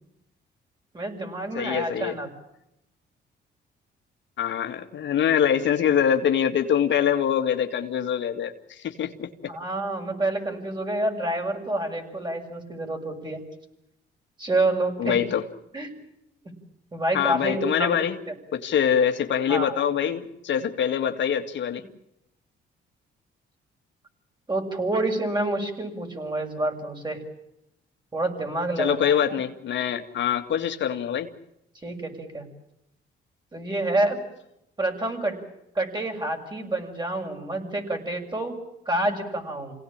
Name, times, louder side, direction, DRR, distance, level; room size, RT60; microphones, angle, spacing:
voice 1, 0.9-2.3 9.5-13.4 14.4-15.2 15.7-15.9 16.9-18.0 19.5-19.7 24.5-27.2 28.1-29.2 31.8-32.5 33.5-34.2 34.8-35.4 35.7-38.5 38.8-39.7, right 2 dB, 20° right, 3 dB, 6.9 m, -28 dB
voice 2, 1.5-2.2 4.4-9.5 15.0-15.4 17.1-18.2 18.5-21.8 28.8-31.3, left 8 dB, 65° left, 6 dB, 2.1 m, -24 dB
27.5 x 18.0 x 8.8 m, 0.83 s
cardioid pair, 90°, 20 cm